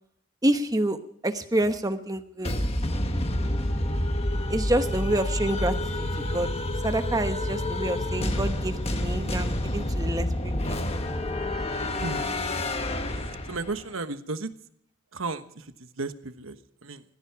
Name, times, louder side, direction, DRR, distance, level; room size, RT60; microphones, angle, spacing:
voice 1, 0.4-1.0 1.2-2.5 4.5-5.8 6.2-6.5 6.8-10.8, right 1 dB, 20° right, 9 dB, 1.0 m, -27 dB
sound 1, 2.4-13.8, left 1 dB, 30° left, 1.3 m, -28 dB
voice 2, 13.1-14.5 15.1-17.0, right 3 dB, 90° right, 10 dB, 1.2 m, -35 dB
19.5 x 15.0 x 4.8 m, 0.68 s
head